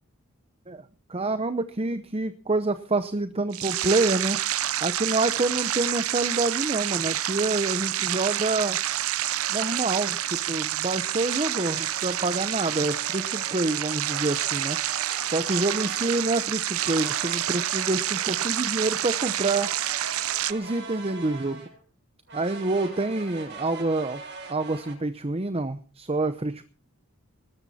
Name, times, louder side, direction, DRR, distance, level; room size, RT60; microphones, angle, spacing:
voice 1, 1.1-4.4 4.8-8.8 9.5-14.8 15.2-19.7 20.5-21.6 22.3-24.2 24.5-26.6, right 2 dB, 25° right, 11 dB, 0.8 m, -27 dB
sound 1, 3.5-20.5, right 13 dB, 70° right, 0.7 m, -28 dB
sound 2, 9.2-10.4 11.2-16.3 16.7-21.8 22.3-24.9, right 4 dB, 50° right, 7.0 m, -41 dB
20.0 x 13.5 x 4.3 m, 0.37 s
head